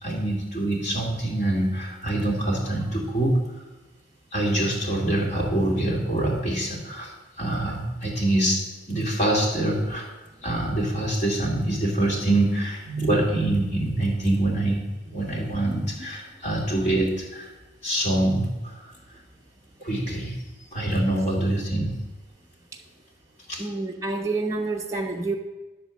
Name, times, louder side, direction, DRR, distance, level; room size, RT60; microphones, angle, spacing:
voice 1, 0.0-3.4 4.3-10.1 10.4-17.5 17.8-18.8 19.8-20.3 20.7-22.0 23.5-23.6, right 1 dB, 35° left, -4 dB, 2.7 m, -25 dB
voice 2, 23.6-25.3, right 3 dB, 15° right, -2 dB, 0.6 m, -29 dB
10.5 x 4.5 x 7.3 m, 1.1 s
head